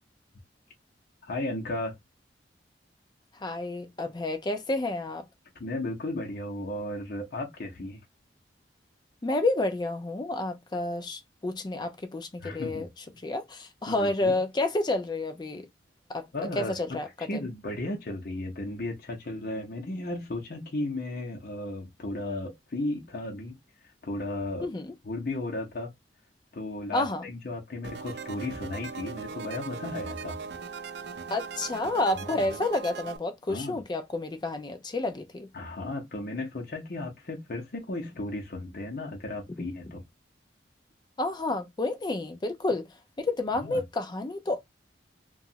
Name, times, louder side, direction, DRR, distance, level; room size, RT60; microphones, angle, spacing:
voice 1, 1.2-2.0 5.6-8.0 12.4-12.9 13.9-14.4 16.3-17.0 17.3-23.5 24.0-24.7 25.0-25.9 26.5-30.4 32.2-32.4 33.5-33.8 35.5-40.0 43.5-43.9, left 2 dB, 55° left, 0.8 m, -35 dB
voice 2, 3.4-5.2 9.2-12.9 13.2-15.7 16.1-16.3 16.6-17.4 24.6-24.9 26.9-27.2 31.3-35.5 41.2-42.9 43.2-44.6, left 2 dB, 25° left, 0.4 m, -30 dB
sound 1, 27.8-33.2, right 5 dB, 70° right, 0.5 m, -39 dB
2.9 x 2.3 x 2.7 m
head